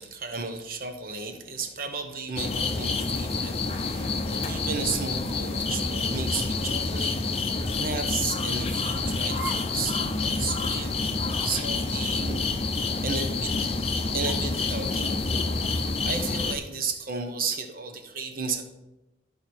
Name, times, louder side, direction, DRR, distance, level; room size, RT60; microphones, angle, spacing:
voice 1, 0.0-10.9 11.4-12.4 13.0-13.8 14.1-18.6, right 4 dB, 50° right, 6 dB, 1.0 m, -34 dB
sound 1, 2.4-16.5, left 3 dB, 35° left, 0.6 m, -28 dB
sound 2, 5.2-5.6 6.3-6.5 7.5-7.9 9.3-9.8 10.1-10.2 11.1-11.5 12.4-13.3 14.2-14.6, right 2 dB, 10° right, 0.8 m, -43 dB
12.5 x 4.9 x 4.4 m, 0.98 s
head